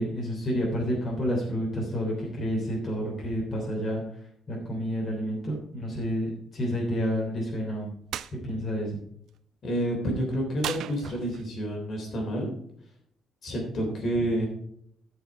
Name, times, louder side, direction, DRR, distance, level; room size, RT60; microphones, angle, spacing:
voice 1, 0.0-4.0 4.5-7.9 8.4-9.0, equal, 30° left, -3 dB, 3.1 m, -29 dB
sound 1, 8.1-8.3 10.6-11.6, right 10 dB, 65° right, 0.5 m, -35 dB
voice 2, 9.6-12.5 13.4-14.5, right 1 dB, 45° left, 1 dB, 3.4 m, -29 dB
12.5 x 6.4 x 4.9 m, 0.69 s
cardioid pair, 155°, 0 cm